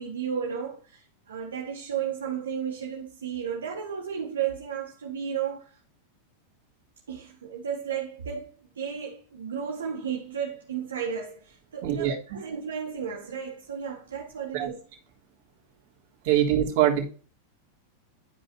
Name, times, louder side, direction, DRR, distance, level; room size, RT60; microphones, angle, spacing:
voice 1, 0.0-5.8 7.1-14.8, right 7 dB, 85° right, 1.6 m, -33 dB
voice 2, 11.8-12.4 14.5-14.7 16.2-17.1, right 11 dB, 60° right, 3.3 m, -23 dB
12.5 x 5.3 x 2.9 m
hypercardioid pair, 100°, 0 cm